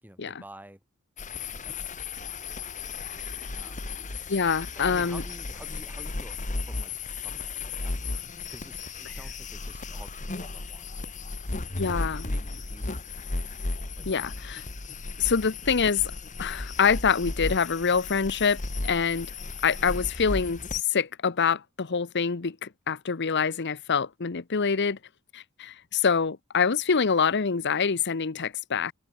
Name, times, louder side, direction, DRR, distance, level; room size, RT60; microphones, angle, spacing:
voice 1, 0.0-0.8 1.5-2.0 3.5-4.0 4.7-11.5 11.8-13.6 14.0-14.4, right 1 dB, 10° right, 5.4 m, -50 dB
sound 1, 1.2-20.8, left 3 dB, 35° left, 1.4 m, -35 dB
voice 2, 4.3-5.2 11.8-12.2 14.1-14.6 15.2-16.0 16.4-19.3 19.6-25.0 25.3-28.9, left 6 dB, 50° left, 0.8 m, -25 dB
head